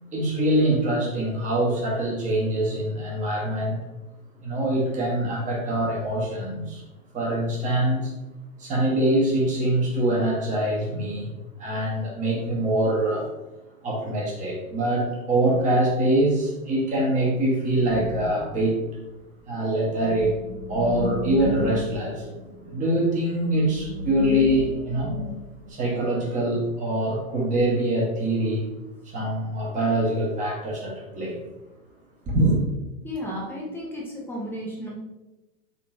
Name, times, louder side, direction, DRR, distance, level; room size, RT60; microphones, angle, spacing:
voice 1, 0.1-3.8 4.4-6.8 7.1-8.1 8.6-11.3 11.6-13.3 13.8-18.8 19.5-20.3 20.7-22.2 22.6-25.1 25.7-28.6 29.1-31.4 32.3-32.6, right 1 dB, 20° right, -2 dB, 0.9 m, -24 dB
sound 1, 17.8-18.7 19.8-25.7, right 1 dB, 80° right, 1.3 m, -33 dB
voice 2, 33.0-34.9, equal, 5° left, -4 dB, 0.4 m, -33 dB
3.8 x 3.5 x 2.4 m, 1.0 s
hypercardioid pair, 130°, 42 cm